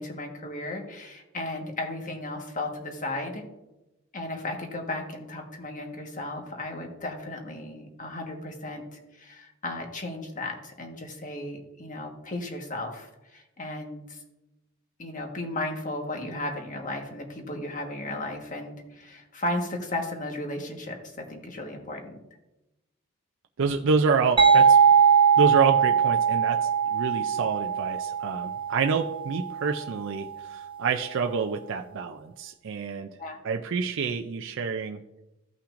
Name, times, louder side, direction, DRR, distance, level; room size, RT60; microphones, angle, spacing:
voice 1, 0.0-3.4 4.1-14.2 15.0-22.2 33.2-33.4, left 1 dB, 40° left, 2 dB, 1.4 m, -35 dB
voice 2, 23.6-24.8 25.4-33.1 33.4-35.0, right 5 dB, 60° right, 4 dB, 0.4 m, -27 dB
sound 1, 24.4-29.8, right 7 dB, 25° right, 0.8 m, -21 dB
15.5 x 5.7 x 2.5 m, 1.0 s
head